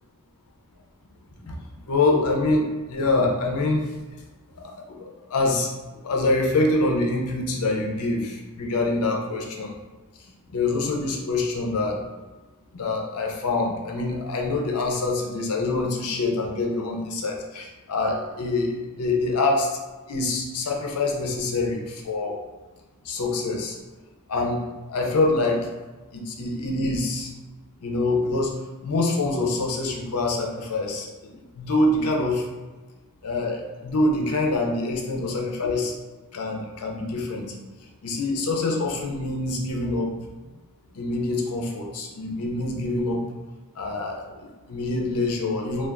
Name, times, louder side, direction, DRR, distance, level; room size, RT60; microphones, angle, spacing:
voice 1, 1.9-4.2 4.6-9.7 10.5-12.0 12.7-19.8 20.1-22.4 23.0-23.8 24.3-25.7 26.1-27.3 27.8-32.4 33.2-35.9 36.3-37.6 38.0-40.1 40.9-43.2 43.8-45.9, left 2 dB, 85° left, 1 dB, 0.6 m, -25 dB
2.4 x 2.3 x 3.5 m, 1.2 s
head